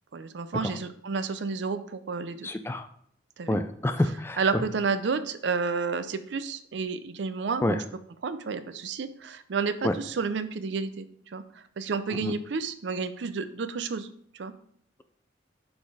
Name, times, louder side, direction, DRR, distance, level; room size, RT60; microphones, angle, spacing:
voice 1, 0.1-2.5 3.4-3.6 4.4-7.8 8.2-14.1 14.3-14.5, right 5 dB, 70° right, 12 dB, 0.5 m, -31 dB
voice 2, 2.4-2.9 3.5-4.4 7.6-7.8 9.8-9.9 12.2-12.3, left 1 dB, 15° left, 9 dB, 0.3 m, -27 dB
6.0 x 3.9 x 4.8 m, 0.65 s
head